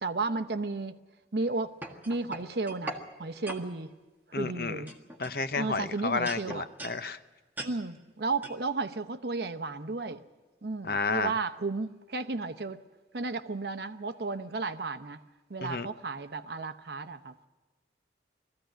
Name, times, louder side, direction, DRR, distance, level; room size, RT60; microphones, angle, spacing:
voice 1, 0.0-1.0 1.3-1.7 2.1-3.9 4.3-4.9 5.5-6.6 7.6-10.2 10.6-12.8 13.1-15.2 15.5-17.3, right 3 dB, 65° right, 9 dB, 0.8 m, -33 dB
sound 1, 1.4-3.0 3.5-3.7 4.3-4.5 4.9-5.8 6.3-7.0 7.6-7.7 8.4-8.6, right 1 dB, 10° right, 1.6 m, -40 dB
voice 2, 4.3-4.8 5.2-7.2 10.8-11.3 15.6-15.9, left 4 dB, 55° left, 11 dB, 0.7 m, -31 dB
20.0 x 15.0 x 9.1 m, 1.2 s
head